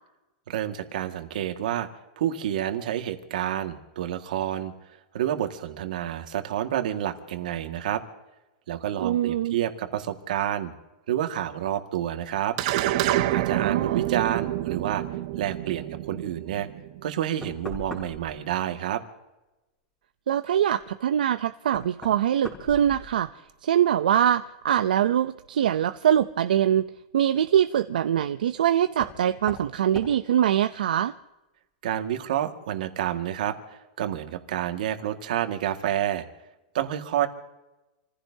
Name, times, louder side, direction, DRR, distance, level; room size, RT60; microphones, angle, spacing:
voice 1, 0.5-1.9 2.2-4.7 5.1-8.0 8.7-10.7 11.1-12.6 13.3-15.0 15.4-16.7 17.0-19.0 31.8-36.3 36.7-37.3, right 11 dB, 70° right, 6 dB, 1.9 m, -29 dB
voice 2, 9.0-9.6 13.5-14.0 20.3-23.3 23.6-26.8 27.1-31.1, right 10 dB, 90° right, 9 dB, 0.6 m, -23 dB
sound 1, 12.6-17.2, right 14 dB, 45° right, 0.8 m, -27 dB
Knock, 17.4-18.4 20.8-20.9 21.7-23.5 23.8-24.4 26.1-26.2 28.9-29.2 29.5-29.7 30.0-30.2, equal, 10° left, 3.7 m, -40 dB
28.5 x 15.5 x 2.8 m, 1.0 s
supercardioid pair, 160°, 5 cm